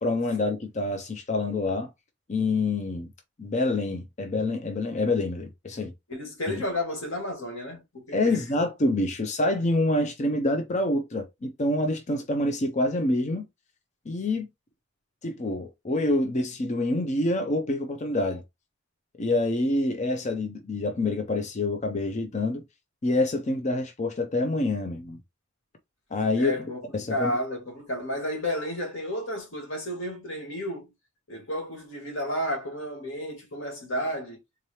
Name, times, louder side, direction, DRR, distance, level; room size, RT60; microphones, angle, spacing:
voice 1, 0.0-1.9 2.3-3.1 3.4-5.9 6.5-6.6 8.1-13.4 14.1-14.5 15.2-18.4 19.2-22.6 23.0-25.2 26.1-26.5 26.9-27.3, left 2 dB, 35° left, 0.5 m, -26 dB
voice 2, 6.1-8.4 26.4-30.9 31.3-34.4, left 1 dB, 85° left, 1.8 m, -32 dB
3.8 x 2.8 x 3.1 m
head